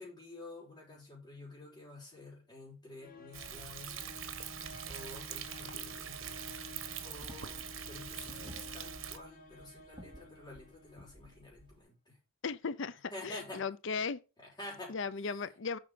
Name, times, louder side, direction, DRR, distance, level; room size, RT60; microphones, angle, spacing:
voice 1, 0.0-4.0 4.9-6.5 7.0-12.2 13.1-13.6 14.4-15.3, left 2 dB, 20° left, 4.4 m, -49 dB
sound 1, 3.0-11.4, left 3 dB, 45° left, 2.3 m, -52 dB
Thunder, 3.3-9.2, right 9 dB, 80° right, 1.2 m, -43 dB
sound 2, 7.2-11.8, right 1 dB, 25° right, 1.7 m, -55 dB
voice 2, 12.4-14.2 14.9-15.8, left 5 dB, 65° left, 0.6 m, -37 dB
7.8 x 5.8 x 5.1 m
head